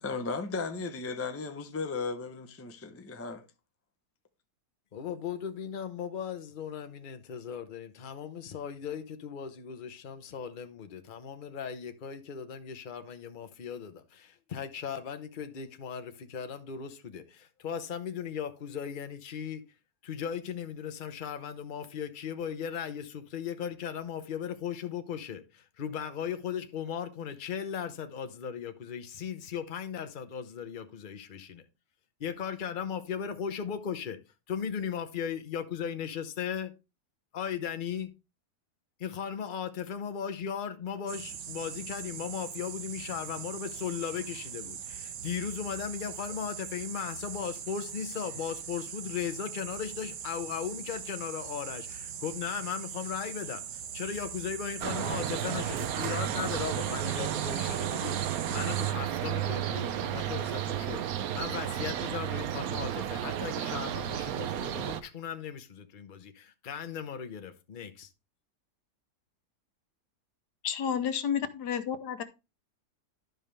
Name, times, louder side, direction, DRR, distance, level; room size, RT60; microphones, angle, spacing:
voice 1, 0.0-3.4, left 4 dB, 20° left, 0.4 m, -35 dB
voice 2, 4.9-19.6 20.0-31.6 32.2-34.2 34.5-36.7 37.3-38.1 39.0-68.1, left 7 dB, 40° left, 0.8 m, -37 dB
sound 1, 41.1-58.9, right 8 dB, 85° right, 1.5 m, -41 dB
sound 2, 54.8-65.0, right 11 dB, 65° right, 1.1 m, -32 dB
voice 3, 70.6-72.2, left 8 dB, 80° left, 1.5 m, -31 dB
12.0 x 5.3 x 3.3 m
omnidirectional pair, 1.8 m